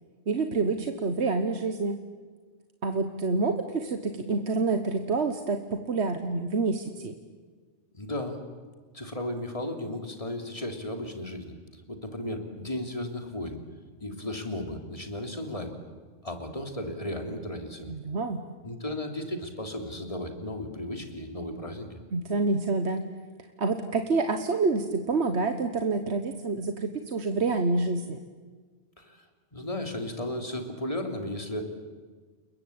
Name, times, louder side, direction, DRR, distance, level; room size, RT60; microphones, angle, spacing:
voice 1, 0.3-2.0 2.8-7.1 17.9-18.4 22.1-23.1 23.6-28.2, right 3 dB, 60° right, 7 dB, 1.5 m, -27 dB
voice 2, 7.9-8.4 8.9-13.6 14.0-15.8 16.2-17.9 18.6-22.0 29.0-29.3 29.5-31.6, left 1 dB, 30° left, 5 dB, 3.1 m, -35 dB
29.5 x 21.5 x 8.7 m, 1.5 s
omnidirectional pair, 1.3 m